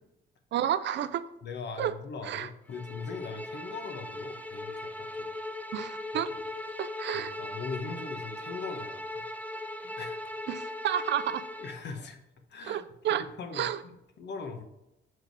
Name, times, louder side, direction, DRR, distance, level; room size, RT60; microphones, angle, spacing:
voice 1, 0.5-1.3 1.8-1.9 2.2-2.5 5.7-6.3 6.8-7.3 10.5-11.4 12.7-13.2 13.5-13.8, right 11 dB, 65° right, 14 dB, 0.5 m, -31 dB
voice 2, 1.4-5.3 7.1-9.2 9.8-10.2 11.6-12.2 12.5-12.8 13.1-14.6, left 4 dB, 60° left, 6 dB, 1.1 m, -40 dB
Bowed string instrument, 2.7-11.8, left 1 dB, 10° left, 0.5 m, -39 dB
6.4 x 4.8 x 4.6 m, 0.88 s
cardioid pair, 90°, 20 cm